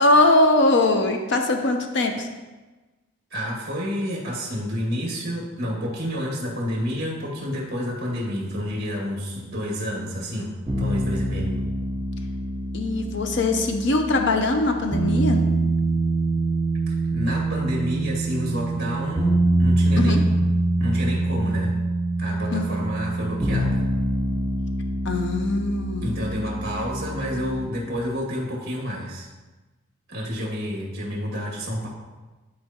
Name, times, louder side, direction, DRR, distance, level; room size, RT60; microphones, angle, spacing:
voice 1, 0.0-2.3 12.7-15.5 20.0-20.2 22.5-22.7 25.0-26.1, left 2 dB, 60° left, 4 dB, 0.7 m, -21 dB
voice 2, 3.3-11.6 16.9-20.5 20.8-21.7 22.2-23.8 26.0-29.3 30.1-31.9, equal, 50° right, -3 dB, 2.1 m, -29 dB
sound 1, 10.7-27.7, right 2 dB, 5° right, 2.0 m, -25 dB
11.5 x 4.3 x 2.9 m, 1.2 s
head